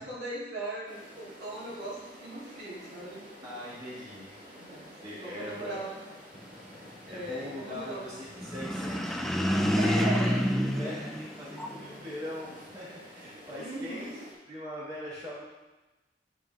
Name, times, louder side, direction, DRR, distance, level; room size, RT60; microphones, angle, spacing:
voice 1, 0.0-3.3 4.6-4.9 5.2-5.9 7.1-8.1 9.8-11.1 13.6-14.2, right 1 dB, 75° right, -8 dB, 2.6 m, -38 dB
sound 1, 0.9-14.3, equal, 50° right, 2.4 m, -50 dB
voice 2, 3.4-4.4 5.0-5.8 7.1-10.1 10.5-14.1 14.5-15.4, left 1 dB, 25° right, -10 dB, 2.6 m, -41 dB
sound 2, 8.4-12.0, equal, ahead, 0.4 m, -28 dB
10.5 x 5.5 x 2.9 m, 1.1 s
head